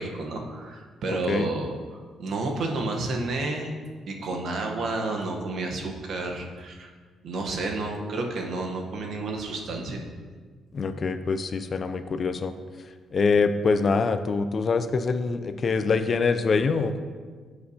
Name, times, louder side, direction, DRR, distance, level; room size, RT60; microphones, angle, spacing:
voice 1, 0.0-1.8 2.2-3.7 4.1-6.9 7.2-10.0, right 2 dB, 65° right, 2 dB, 1.0 m, -30 dB
voice 2, 10.7-12.5 13.1-17.0, left 4 dB, 45° left, 10 dB, 0.4 m, -24 dB
7.9 x 6.3 x 2.8 m, 1.5 s
cardioid pair, 90°, 0 cm